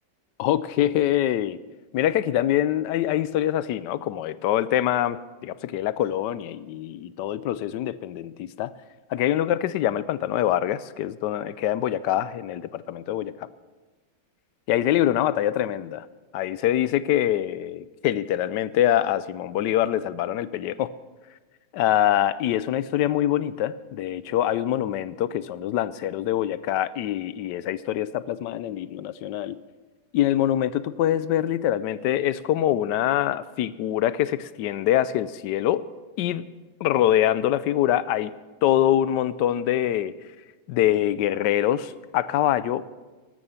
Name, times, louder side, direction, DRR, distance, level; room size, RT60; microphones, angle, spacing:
voice 1, 0.4-1.6 1.9-8.7 9.1-13.5 14.7-16.1 16.3-20.9 21.7-29.6 30.1-35.9 36.2-36.4 36.8-38.3 38.6-40.2 40.7-43.0, left 12 dB, 75° left, 16 dB, 1.1 m, -24 dB
14.5 x 12.5 x 5.6 m, 1.2 s
omnidirectional pair, 2.1 m